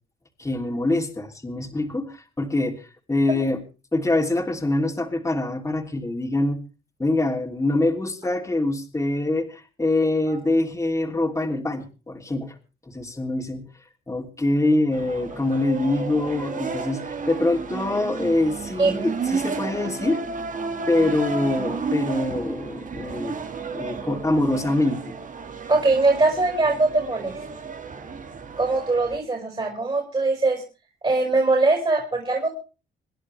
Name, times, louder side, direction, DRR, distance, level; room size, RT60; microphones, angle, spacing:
voice 1, 0.4-3.6 3.9-6.6 7.0-12.5 12.9-13.6 14.1-20.2 20.9-23.4 23.7-25.0, left 2 dB, 15° left, 1 dB, 3.0 m, -24 dB
sound 1, 14.9-29.2, right 4 dB, 40° right, 2.0 m, -32 dB
voice 2, 25.7-27.4 28.6-30.6 31.0-32.5, right 3 dB, 25° right, 1 dB, 5.1 m, -21 dB
26.5 x 11.0 x 3.4 m, 0.34 s
cardioid pair, 90°, 20 cm